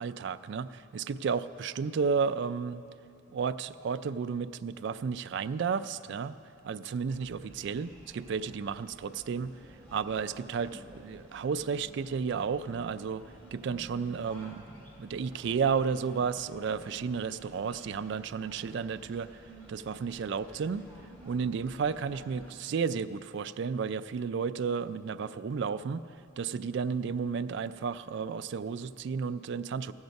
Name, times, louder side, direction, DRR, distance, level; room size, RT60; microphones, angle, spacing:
voice 1, 0.0-2.8 3.3-6.4 6.6-9.5 9.9-13.2 13.5-14.5 15.0-19.4 19.7-20.9 21.2-26.0 26.4-29.9, right 6 dB, 60° right, 13 dB, 0.3 m, -32 dB
sound 1, 7.1-22.5, right 1 dB, 5° left, 2.4 m, -52 dB
15.0 x 8.0 x 5.3 m, 2.6 s
head